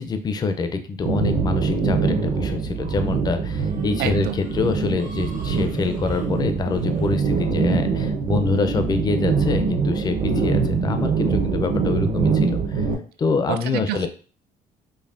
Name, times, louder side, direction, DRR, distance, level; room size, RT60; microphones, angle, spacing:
voice 1, 0.0-12.8 13.2-14.1, left 4 dB, 25° left, 8 dB, 0.4 m, -26 dB
sound 1, 1.1-12.9, right 5 dB, 55° right, 0.8 m, -23 dB
voice 2, 4.0-4.4 13.5-14.1, right 10 dB, 70° right, 11 dB, 0.4 m, -27 dB
5.3 x 2.1 x 2.4 m, 0.40 s
cardioid pair, 110°, 17 cm